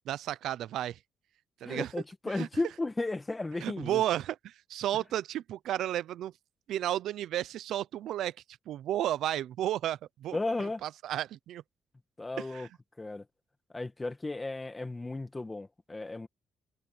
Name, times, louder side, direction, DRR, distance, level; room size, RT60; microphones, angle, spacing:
voice 1, 0.1-1.0 1.6-1.9 2.4-2.5 3.6-6.3 6.7-8.3 8.7-10.4 10.8-11.6 12.4-12.7, right 12 dB, 80° right, 0.7 m, -32 dB
voice 2, 1.6-4.0 10.3-10.8 12.2-12.7 13.0-13.2 13.7-16.3, left 2 dB, 20° left, 2.0 m, -34 dB
cardioid pair, 90°, 0 cm